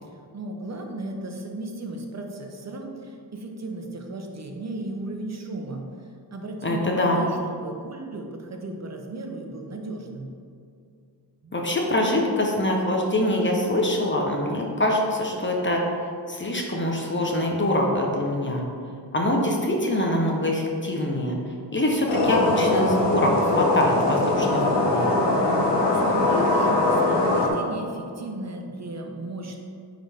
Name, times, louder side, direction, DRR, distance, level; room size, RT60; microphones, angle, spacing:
voice 1, 0.0-5.9 6.3-10.3 11.4-11.7 25.5-29.6, right 2 dB, 40° right, 3 dB, 0.9 m, -35 dB
voice 2, 6.6-7.2 11.5-15.8 16.3-18.6 19.1-21.4 21.7-25.2, left 1 dB, 30° left, 0 dB, 0.9 m, -24 dB
sound 1, 22.1-27.5, left 2 dB, 90° left, 1.2 m, -22 dB
9.6 x 3.9 x 3.6 m, 2.4 s
wide cardioid pair, 110°, 41 cm